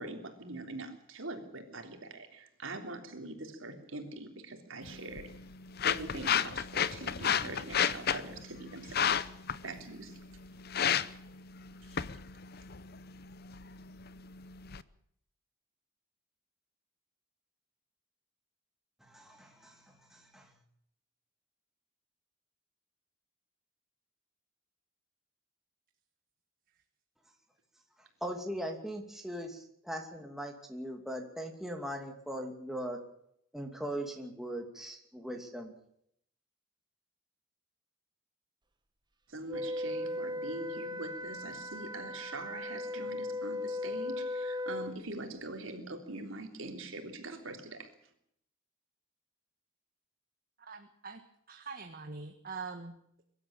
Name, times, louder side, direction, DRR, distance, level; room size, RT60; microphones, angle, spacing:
voice 1, 0.0-5.3 5.8-9.3 9.6-10.2 11.8-12.0 39.3-47.9, right 2 dB, 75° right, 4 dB, 3.5 m, -43 dB
sound 1, 4.8-14.8, left 8 dB, 50° left, 0.7 m, -34 dB
voice 2, 19.0-20.5 28.2-33.0 33.5-35.7, equal, ahead, 2 dB, 2.6 m, -40 dB
Wind instrument woodwind instrument, 39.5-45.0, left 2 dB, 20° right, 1.5 m, -37 dB
voice 3, 50.6-51.2 51.5-53.2, right 4 dB, 45° right, 5 dB, 1.5 m, -44 dB
23.5 x 12.5 x 8.9 m, 0.72 s
head